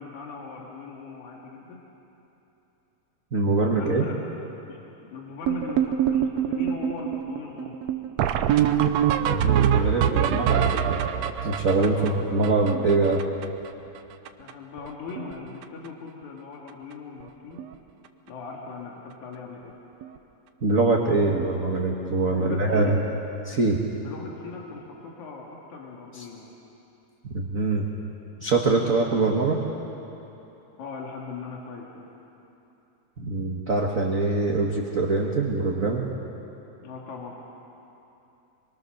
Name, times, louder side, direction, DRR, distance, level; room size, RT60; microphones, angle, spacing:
voice 1, 0.0-1.8 3.6-4.1 4.7-4.8 5.1-7.8 11.9-12.5 14.4-17.6 18.3-19.7 22.3-23.0 24.0-26.5 28.8-29.0 30.8-32.1 36.8-37.4, left 5 dB, 75° left, -1 dB, 3.4 m, -39 dB
voice 2, 3.3-4.1 9.2-11.0 11.4-13.2 20.6-23.0 23.4-23.9 26.1-26.2 27.3-27.9 28.4-29.6 33.2-36.1, right 3 dB, 40° right, -1 dB, 1.2 m, -23 dB
sound 1, 5.5-13.7 14.0-14.1 14.3-14.5 14.8-15.3 15.6-15.9 16.7-16.8 17.2-17.3 17.6-17.7 20.0-20.1 22.4-22.5, right 9 dB, 70° right, 1.8 m, -25 dB
25.0 x 22.5 x 6.6 m, 3.0 s
omnidirectional pair, 3.5 m